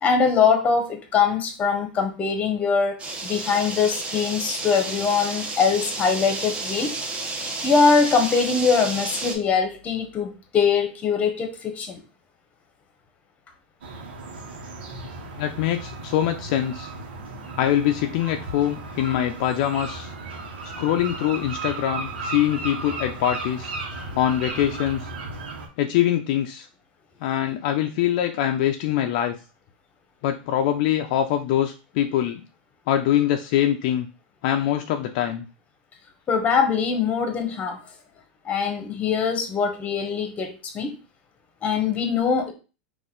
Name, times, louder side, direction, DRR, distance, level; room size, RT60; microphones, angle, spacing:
voice 1, 0.0-6.9 7.6-12.0 36.3-37.8 38.4-40.9 41.6-42.5, left 5 dB, 25° left, 6 dB, 1.0 m, -22 dB
sound 1, 3.0-9.4, right 3 dB, 20° right, 1.0 m, -31 dB
sound 2, 13.8-25.7, right 3 dB, 90° right, 1.0 m, -35 dB
voice 2, 15.4-16.9 17.6-20.1 20.8-23.7 24.1-25.1 25.8-26.7 27.2-29.3 30.2-32.4 32.9-34.1 34.4-35.4, left 11 dB, 60° left, 5 dB, 0.5 m, -23 dB
4.1 x 2.5 x 3.8 m, 0.32 s
supercardioid pair, 130°, 5 cm